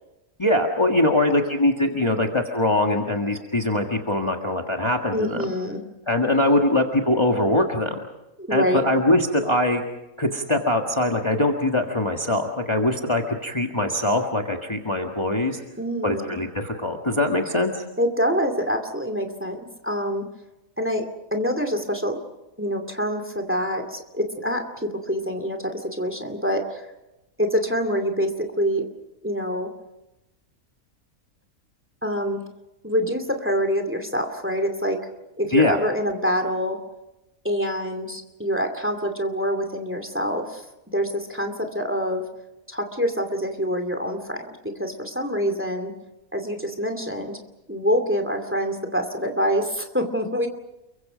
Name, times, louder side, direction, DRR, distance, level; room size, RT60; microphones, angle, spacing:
voice 1, 0.4-5.5 6.1-8.0 8.5-9.8 10.2-15.6 16.0-17.8 35.5-35.8, left 1 dB, 20° left, 2 dB, 1.7 m, -22 dB
voice 2, 5.1-5.8 8.4-8.9 15.8-16.4 18.0-20.3 20.8-22.2 22.6-26.9 27.4-28.9 29.2-29.7 32.0-32.4 32.8-35.0 35.4-36.8 37.4-40.6 40.9-42.3 42.7-45.9 46.3-47.4 47.7-50.5, equal, 10° right, 6 dB, 2.5 m, -26 dB
29.5 x 23.5 x 5.1 m, 0.96 s
omnidirectional pair, 1.5 m